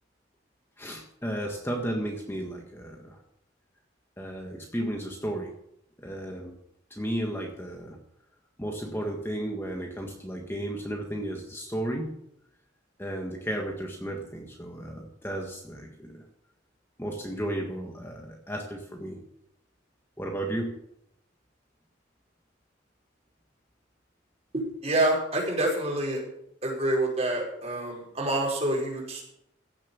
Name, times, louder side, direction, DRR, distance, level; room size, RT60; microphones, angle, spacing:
voice 1, 0.8-3.2 4.2-5.5 6.0-6.5 6.9-8.0 8.6-12.2 13.0-16.2 17.0-19.2 20.2-20.8, right 1 dB, 10° left, 1 dB, 1.5 m, -34 dB
voice 2, 24.5-26.2 26.6-29.2, right 1 dB, 35° right, -2 dB, 4.9 m, -27 dB
16.0 x 7.3 x 7.0 m, 0.77 s
head